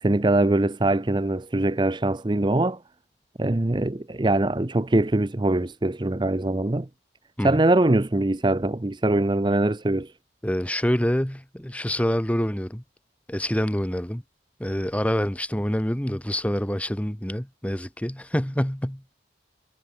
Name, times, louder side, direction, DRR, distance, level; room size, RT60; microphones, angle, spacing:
voice 1, 0.0-2.8 3.4-6.9 7.4-10.1, right 2 dB, 25° right, 0.6 m, -22 dB
voice 2, 10.4-12.8 13.3-14.2 14.6-19.1, equal, 5° left, 1.2 m, -26 dB
head